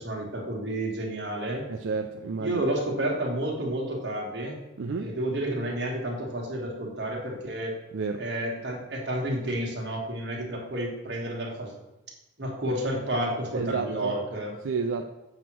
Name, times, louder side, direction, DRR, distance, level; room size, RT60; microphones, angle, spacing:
voice 1, 0.0-1.7 2.4-4.6 5.0-7.7 8.2-11.7 12.4-14.5, right 1 dB, 60° right, -1 dB, 1.5 m, -30 dB
voice 2, 1.7-2.6 4.8-5.1 7.9-8.2 13.5-14.1 14.6-15.1, right 4 dB, 85° right, 4 dB, 0.4 m, -30 dB
7.2 x 3.0 x 6.0 m, 0.99 s
head